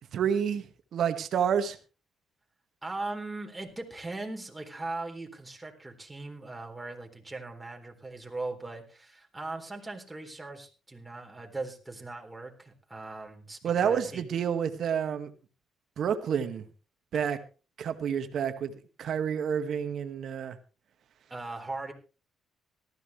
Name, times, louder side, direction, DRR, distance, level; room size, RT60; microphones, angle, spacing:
voice 1, 0.1-0.6 0.9-1.8 13.6-15.3 16.0-16.6 17.1-17.4 17.8-18.7 19.0-20.6, right 8 dB, 65° right, 9 dB, 1.9 m, -29 dB
voice 2, 2.8-14.3 21.3-21.9, right 2 dB, 15° right, 2 dB, 3.9 m, -39 dB
18.5 x 14.0 x 3.3 m, 0.34 s
cardioid pair, 90°, 0 cm